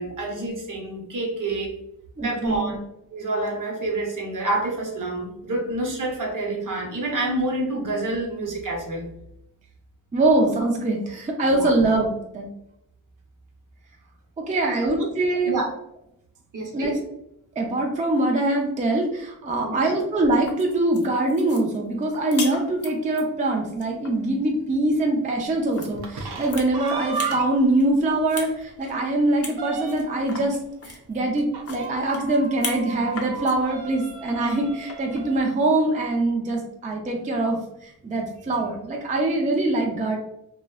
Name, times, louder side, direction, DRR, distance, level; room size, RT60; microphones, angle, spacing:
voice 1, 0.0-1.7 2.2-2.8 3.1-9.1 11.5-11.7 14.8-15.1 15.4-15.7 16.5-17.0 19.6-19.9, right 2 dB, 55° right, 0 dB, 0.8 m, -28 dB
voice 2, 2.2-2.7 10.1-12.5 14.5-15.6 16.7-17.0 17.6-30.6 30.8-40.2, right 2 dB, 20° right, 1 dB, 0.4 m, -23 dB
sound 1, 20.3-23.2 23.7-24.1 25.7-25.9 26.3-27.4 27.8-28.5 28.8-28.9 29.4-29.6 29.9-32.9 33.1-33.5 34.9-35.3, left 3 dB, 40° left, 0.5 m, -36 dB
sound 2, 25.9-27.7 28.2-28.3 28.6-28.7 29.1-30.3 31.5-35.4, right 5 dB, 80° right, 0.5 m, -34 dB
2.5 x 2.1 x 2.3 m, 0.79 s
wide cardioid pair, 90°, 38 cm